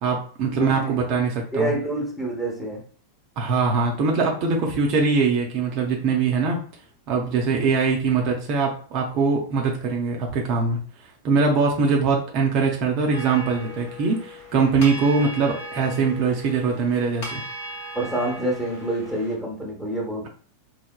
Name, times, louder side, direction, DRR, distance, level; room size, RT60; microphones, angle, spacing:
voice 1, 0.0-1.7 3.4-6.6 7.1-17.4, right 4 dB, 40° right, 0.6 m, -22 dB
voice 2, 0.5-1.0 1.5-2.8 17.9-20.3, right 1 dB, 5° left, 0.9 m, -27 dB
sound 1, 13.1-19.3, equal, 50° left, 0.8 m, -37 dB
3.2 x 2.1 x 2.2 m
figure-of-eight pair, 90°, 0 cm